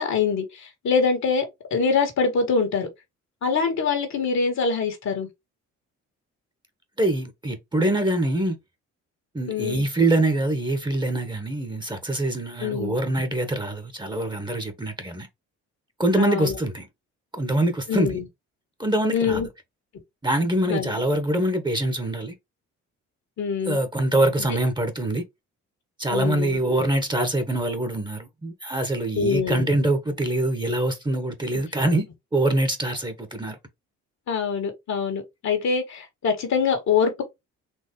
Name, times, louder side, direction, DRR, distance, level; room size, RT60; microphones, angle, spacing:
voice 1, 0.0-1.4 1.7-2.9 3.4-5.3 9.5-9.9 12.6-13.0 16.2-16.6 17.9-18.3 19.1-19.5 20.7-20.9 23.4-23.8 26.1-26.6 29.1-29.7 34.3-37.2, left 5 dB, 65° left, 1.8 m, -24 dB
voice 2, 7.0-8.6 9.3-15.3 16.0-16.9 17.4-18.2 18.8-19.4 20.2-22.3 23.7-25.2 26.0-32.0 32.3-33.6, right 1 dB, 15° right, 1.1 m, -24 dB
4.5 x 2.9 x 3.1 m
cardioid pair, 90°, 30 cm